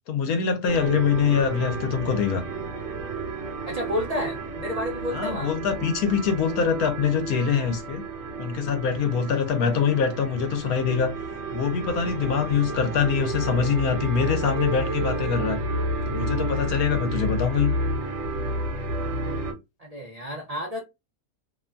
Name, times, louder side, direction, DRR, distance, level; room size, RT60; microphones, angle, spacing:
voice 1, 0.1-2.4 5.1-8.0 8.4-11.1 11.5-15.6 16.1-17.7, left 6 dB, 80° left, 1.1 m, -24 dB
sound 1, 0.7-19.5, right 2 dB, 60° right, 1.2 m, -31 dB
voice 2, 3.7-5.5 19.8-20.8, left 1 dB, 80° right, 0.3 m, -31 dB
2.9 x 2.2 x 2.5 m
omnidirectional pair, 1.6 m